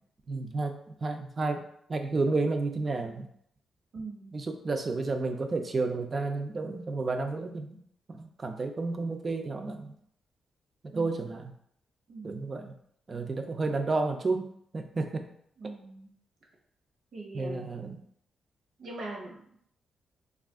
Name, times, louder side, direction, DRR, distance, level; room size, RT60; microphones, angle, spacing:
voice 1, 0.3-1.6 1.9-3.3 4.3-7.8 8.1-9.9 10.9-11.5 12.2-12.7 13.1-15.3 17.3-18.0, right 3 dB, 35° right, 5 dB, 0.4 m, -31 dB
voice 2, 3.9-4.4 10.9-11.3 12.1-12.4 15.6-16.1 17.1-17.7 18.8-19.4, right 2 dB, 75° right, -2 dB, 0.9 m, -41 dB
2.4 x 2.3 x 3.5 m, 0.67 s
cardioid pair, 100°, 0 cm